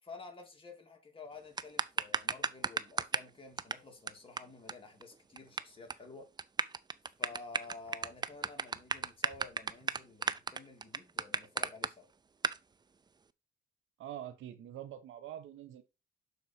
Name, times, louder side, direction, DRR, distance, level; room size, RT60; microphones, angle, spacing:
voice 1, 0.0-6.3 7.2-12.1, left 3 dB, 25° left, 2.4 m, -51 dB
sound 1, 1.6-3.3 3.6-3.7 4.1-4.2 4.4-4.5 4.7-4.8 5.0-5.6 5.9-6.1 6.4-11.9 12.4-12.6, right 5 dB, 20° right, 0.4 m, -33 dB
voice 2, 14.0-15.8, right 11 dB, 85° right, 1.1 m, -45 dB
6.5 x 4.2 x 4.3 m
cardioid pair, 90°, 20 cm